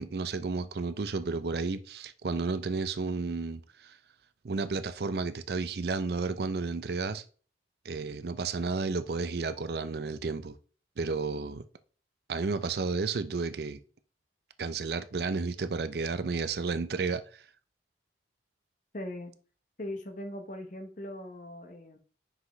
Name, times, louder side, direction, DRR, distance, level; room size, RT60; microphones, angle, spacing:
voice 1, 0.0-3.9 4.4-7.2 7.8-10.6 11.0-11.6 12.3-13.8 14.6-17.4, right 4 dB, 60° right, 0.5 m, -32 dB
voice 2, 18.9-19.3 19.8-22.0, left 1 dB, 45° left, 1.0 m, -40 dB
5.7 x 5.2 x 3.2 m
head